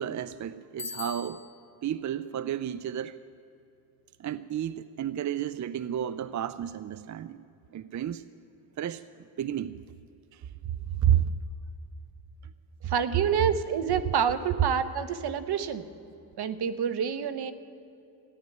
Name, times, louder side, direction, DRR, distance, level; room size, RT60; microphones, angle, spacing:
voice 1, 0.0-1.4 1.8-3.2 4.2-7.4 7.7-8.2 8.8-9.8 10.3-10.5 10.9-11.4 12.8-12.9, right 10 dB, 45° right, 15 dB, 0.5 m, -31 dB
Bicycle bell, 0.8-1.8, left 5 dB, 45° left, 2.8 m, -40 dB
voice 2, 12.9-15.8 16.4-17.5, right 7 dB, 75° right, 12 dB, 1.1 m, -28 dB
14.5 x 10.5 x 9.2 m, 2.8 s
cardioid pair, 90°, 40 cm